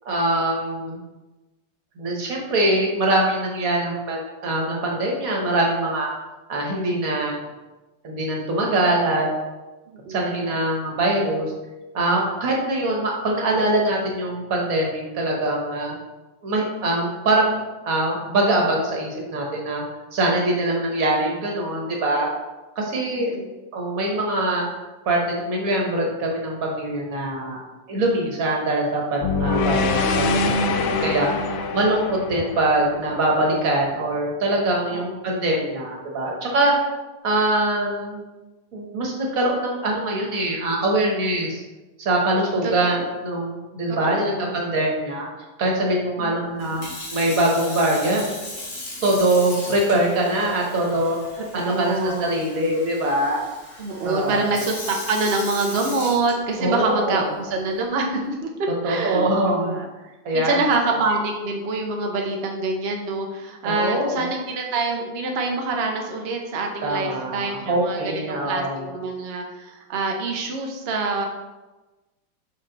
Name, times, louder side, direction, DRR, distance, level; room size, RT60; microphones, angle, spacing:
voice 1, 0.0-1.0 2.0-6.1 6.5-7.4 8.0-9.3 10.1-11.5 11.9-15.9 16.4-17.6 17.8-19.8 20.1-22.3 22.7-23.3 23.7-24.7 25.0-27.6 27.9-31.3 31.7-36.7 37.2-38.2 38.7-41.6 42.0-45.3 45.6-48.3 49.0-51.2 51.5-53.4 54.0-54.5 56.6-57.2 58.8-59.8 60.2-60.6 63.6-64.2 66.8-68.9, right 1 dB, 50° right, -1 dB, 1.5 m, -23 dB
voice 2, 9.9-10.4 23.2-23.6 29.7-31.1 34.9-35.0 42.6-43.0 44.0-44.5 46.2-46.8 51.5-52.3 53.8-58.5 58.8-59.9 60.3-68.0 68.3-71.3, right 3 dB, 75° right, 1 dB, 0.5 m, -26 dB
sound 1, 29.2-33.5, left 3 dB, 90° left, 1.4 m, -24 dB
Sink (filling or washing) / Fill (with liquid), 46.6-56.8 57.5-57.8, left 2 dB, 65° left, 2.4 m, -37 dB
6.3 x 4.1 x 3.9 m, 1.1 s
omnidirectional pair, 2.1 m